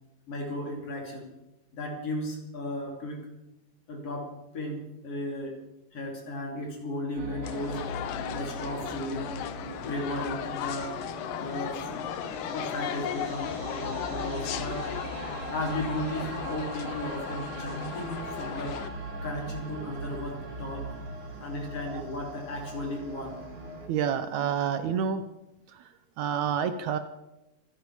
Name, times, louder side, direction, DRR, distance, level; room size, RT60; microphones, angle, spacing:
voice 1, 0.3-1.3 1.7-3.2 3.9-5.6 5.9-7.8 8.3-9.3 9.8-11.0 11.4-11.9 12.5-14.9 15.5-18.8 19.2-20.9 21.4-23.4, left 1 dB, 50° left, 1 dB, 3.8 m, -35 dB
sound 1, 7.2-23.9, right 2 dB, 45° right, 2.7 m, -40 dB
sound 2, 7.4-18.9, left 11 dB, 90° left, 2.4 m, -36 dB
voice 2, 23.8-25.2 25.7-25.9 26.2-27.0, right 8 dB, 75° right, 10 dB, 1.9 m, -29 dB
25.5 x 10.5 x 4.8 m, 0.96 s
omnidirectional pair, 3.6 m